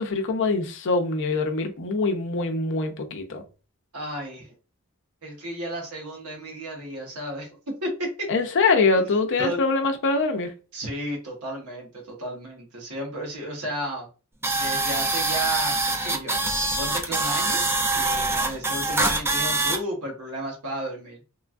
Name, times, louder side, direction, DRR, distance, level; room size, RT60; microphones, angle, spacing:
voice 1, 0.0-3.4 8.3-10.5, left 3 dB, 60° left, 0.5 m, -23 dB
voice 2, 3.9-4.5 5.2-8.3 9.4-9.6 10.7-14.1 14.6-16.4 16.8-17.6 17.9-21.2, right 1 dB, 85° right, 1.2 m, -33 dB
sound 1, 14.4-19.8, right 2 dB, 10° right, 0.3 m, -24 dB
3.0 x 2.3 x 2.5 m
head